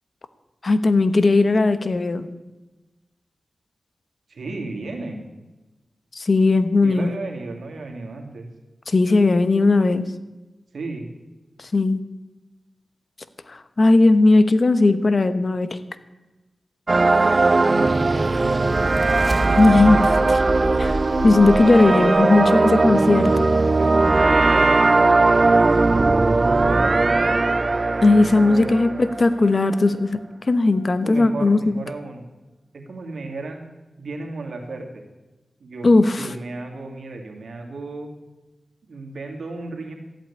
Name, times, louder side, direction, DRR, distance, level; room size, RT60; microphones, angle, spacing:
voice 1, 0.6-2.3 6.1-7.1 8.9-10.1 11.6-12.0 13.5-15.8 19.6-20.4 20.8-21.0 21.2-23.5 28.0-30.2 30.5-31.7 35.8-36.3, left 3 dB, 50° left, 12 dB, 1.0 m, -17 dB
voice 2, 4.3-5.2 6.8-8.5 10.7-11.1 17.6-19.0 22.3-22.6 23.8-24.8 25.1-27.0 28.3-29.0 31.0-32.2 32.9-33.7 34.0-35.0 35.6-38.1 38.8-39.9, right 2 dB, 85° right, 2 dB, 2.5 m, -34 dB
sound 1, 16.9-29.5, right 3 dB, 45° right, 0.6 m, -19 dB
sound 2, 18.2-22.3, right 1 dB, 25° right, 1.5 m, -28 dB
13.5 x 9.1 x 8.6 m, 1.1 s
wide cardioid pair, 65°, 0 cm